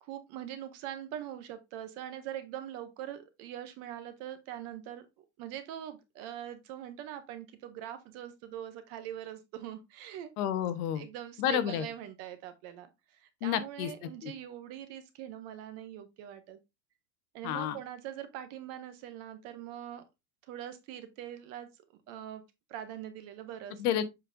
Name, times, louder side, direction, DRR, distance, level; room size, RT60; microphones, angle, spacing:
voice 1, 0.0-10.3 10.9-16.6 17.3-20.0 20.4-21.7 22.1-22.4 22.7-23.8, right 11 dB, 30° right, 0.6 m, -43 dB
voice 2, 10.4-11.0 11.4-11.8 13.4-13.9 14.2-14.3 17.4-17.8 23.8-24.0, left 10 dB, 60° left, 1.0 m, -30 dB
7.4 x 5.2 x 2.5 m
supercardioid pair, 165°, 50 cm